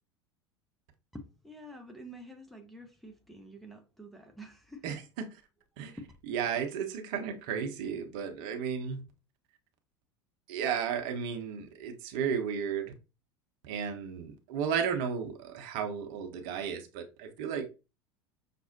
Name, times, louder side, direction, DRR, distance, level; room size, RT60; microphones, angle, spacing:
voice 1, 1.1-5.0 6.0-6.1, equal, ahead, 0.6 m, -48 dB
voice 2, 4.8-5.3 5.8-6.0 6.3-9.0 10.5-12.9 13.6-17.7, right 7 dB, 50° right, 0.7 m, -34 dB
5.8 x 2.0 x 2.6 m
figure-of-eight pair, 75°, 14 cm